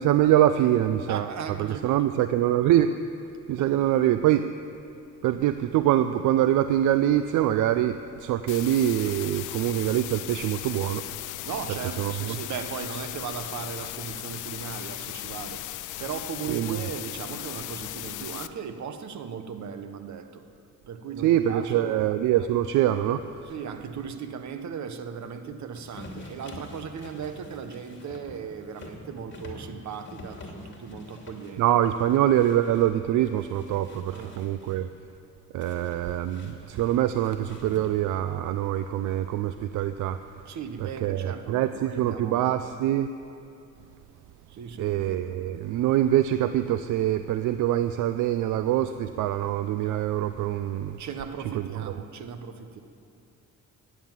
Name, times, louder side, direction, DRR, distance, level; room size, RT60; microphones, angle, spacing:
voice 1, 0.0-1.3 1.6-2.9 3.5-4.5 5.2-11.0 12.0-12.4 16.5-16.8 21.2-23.2 31.6-34.9 35.5-40.2 40.8-43.1 44.8-51.0 51.5-51.7, right 12 dB, 85° right, 11 dB, 0.5 m, -24 dB
voice 2, 1.1-2.2 3.6-3.7 11.4-15.6 16.0-20.4 20.9-22.1 23.5-31.6 34.1-34.4 40.4-42.5 44.5-45.0 51.0-52.8, right 6 dB, 65° right, 8 dB, 1.2 m, -37 dB
sound 1, 8.5-18.5, left 15 dB, 85° left, 0.6 m, -37 dB
sound 2, 25.7-32.9 33.3-34.8 35.6-38.2, left 2 dB, 40° left, 2.7 m, -46 dB
14.5 x 10.0 x 7.4 m, 2.6 s
cardioid pair, 90°, 30 cm